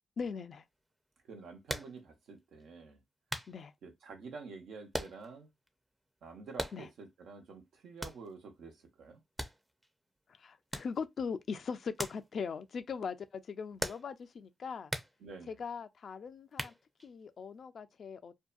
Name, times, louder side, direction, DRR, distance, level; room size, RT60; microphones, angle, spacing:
voice 1, 0.2-0.6 3.5-3.7 6.7-6.9 10.3-14.9 15.5-16.7 17.0-18.3, left 5 dB, 65° left, 0.4 m, -40 dB
voice 2, 1.3-3.0 3.8-5.5 6.2-9.2 15.2-15.6, right 4 dB, 85° right, 0.7 m, -49 dB
sound 1, 1.7-2.0 2.6-2.7 3.3-3.6 4.9-5.4 5.7-5.8 6.5-7.0 8.0-8.3 9.4-9.9 10.7-11.0 12.0-12.3 12.5-12.6 13.8-14.2 14.9-15.2 16.5-17.1, right 1 dB, 15° right, 0.6 m, -39 dB
2.6 x 2.2 x 2.4 m
cardioid pair, 55°, 0 cm